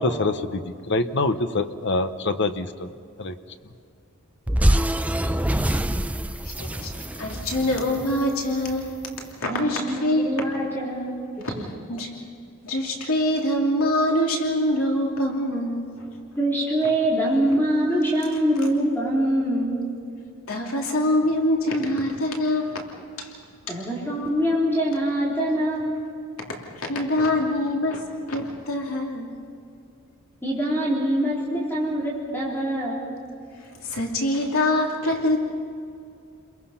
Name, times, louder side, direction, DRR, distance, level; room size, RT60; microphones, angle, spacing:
voice 1, 0.0-2.9 3.2-3.3, left 2 dB, 55° left, 10 dB, 1.0 m, -25 dB
sound 1, 4.5-8.9, right 1 dB, 5° right, 0.6 m, -25 dB
voice 2, 6.4-9.1 9.3-10.3 11.5-11.6 11.9-12.1 12.6-16.0 20.5-22.8 23.2-23.3 23.7-23.8 26.7-29.3 33.6-35.4, left 1 dB, 75° left, 0 dB, 2.9 m, -24 dB
voice 3, 9.4-11.1 11.5-11.7 16.4-19.9 23.7-26.0 30.4-33.1, right 1 dB, 10° left, -5 dB, 3.8 m, -24 dB
30.0 x 22.5 x 5.8 m, 2.4 s
head